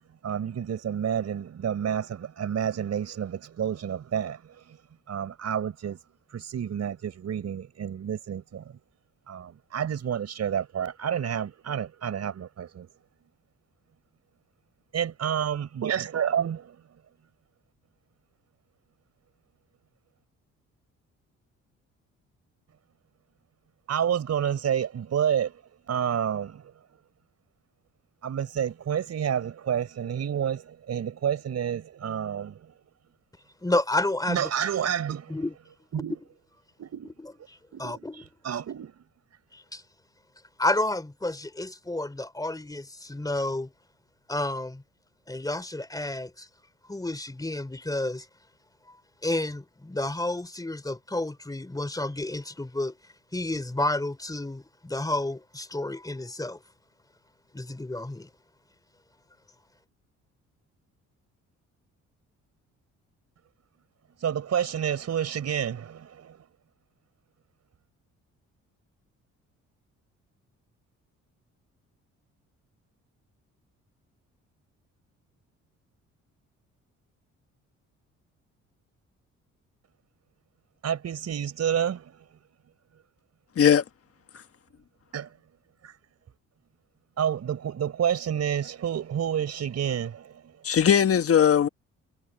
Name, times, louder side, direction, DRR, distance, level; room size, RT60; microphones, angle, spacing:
voice 1, 0.2-4.8 5.1-6.0 6.3-8.8 9.3-12.9 14.9-16.8 23.9-25.6 25.9-26.7 28.2-32.7 34.3-35.4 35.9-36.2 36.8-37.1 37.7-38.0 38.4-39.0 64.2-66.5 80.8-82.2 85.1-85.3 85.8-85.9 87.2-90.6, right 8 dB, 55° right, 4.8 m, -29 dB
voice 2, 33.6-34.5 35.3-35.5 37.8-38.2 39.5-39.8 40.6-43.7 44.3-44.8 45.3-46.5 46.9-48.3 49.2-53.0 53.3-56.6 57.5-58.3, left 2 dB, 10° left, 3.2 m, -30 dB
voice 3, 90.6-91.7, left 8 dB, 50° left, 1.6 m, -19 dB
cardioid pair, 90°, 30 cm